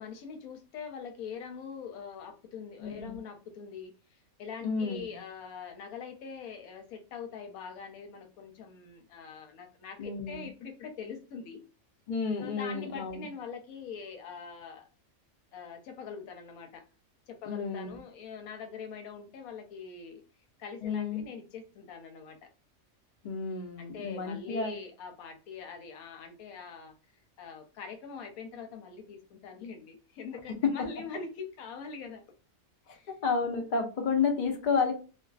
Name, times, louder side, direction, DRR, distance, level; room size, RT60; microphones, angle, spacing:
voice 1, 0.0-11.6 12.4-14.9 15.5-16.8 17.3-20.2 20.6-22.5 23.8-27.0 27.4-32.2 32.9-33.1, left 6 dB, 85° left, 6 dB, 1.1 m, -43 dB
voice 2, 2.8-3.2 4.6-5.1 10.0-10.5 12.1-13.3 17.5-18.0 20.8-21.2 23.2-24.7 33.1-34.9, left 5 dB, 65° left, 3 dB, 0.4 m, -31 dB
2.5 x 2.2 x 2.3 m, 0.35 s
omnidirectional pair, 1.5 m